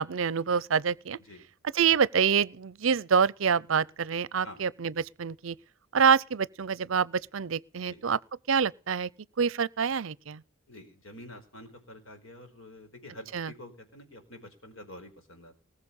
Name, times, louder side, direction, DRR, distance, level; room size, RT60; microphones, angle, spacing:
voice 1, 0.0-1.2 1.7-5.6 5.9-8.2 8.5-9.1 9.4-10.4 13.3-13.5, right 6 dB, 70° right, 0.6 m, -26 dB
voice 2, 10.7-15.6, left 1 dB, 75° left, 4.6 m, -48 dB
20.0 x 6.9 x 6.9 m
head